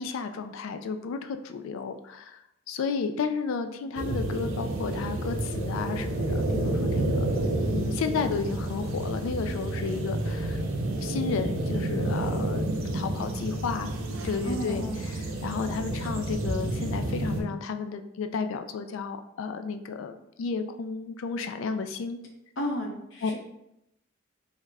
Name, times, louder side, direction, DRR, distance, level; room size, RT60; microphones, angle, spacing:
voice 1, 0.0-2.4 2.7-7.2 7.7-10.6 11.0-12.7 12.9-13.9 14.2-22.2 23.2-23.3, left 5 dB, 85° left, 8 dB, 0.3 m, -32 dB
sound 1, 4.0-17.4, right 1 dB, 90° right, 0.5 m, -30 dB
voice 2, 14.4-15.0 15.9-16.3 22.6-23.4, equal, 65° left, 1 dB, 0.7 m, -34 dB
3.5 x 2.1 x 3.3 m, 0.83 s
head